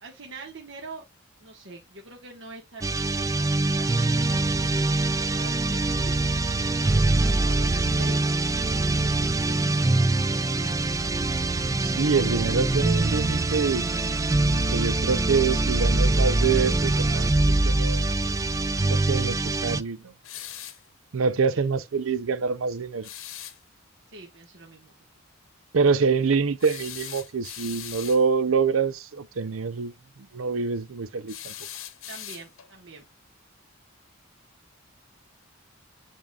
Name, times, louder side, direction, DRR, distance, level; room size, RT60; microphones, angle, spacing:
voice 1, 0.0-1.0 1.4-6.1 6.8-9.6 10.3-11.1 21.5-21.6 24.1-24.9 32.1-33.0, right 2 dB, 55° right, 1.5 m, -44 dB
sound 1, 2.8-19.8, right 2 dB, 15° right, 0.3 m, -24 dB
voice 2, 11.8-13.9 14.7-17.3 17.6-18.0 18.9-20.1 21.1-23.1 25.7-29.9 30.3-31.5, right 5 dB, 80° right, 0.6 m, -25 dB
sound 2, 20.2-20.9 23.0-23.6 26.6-28.3 31.3-32.7, left 11 dB, 80° left, 1.1 m, -40 dB
10.5 x 3.8 x 2.4 m
head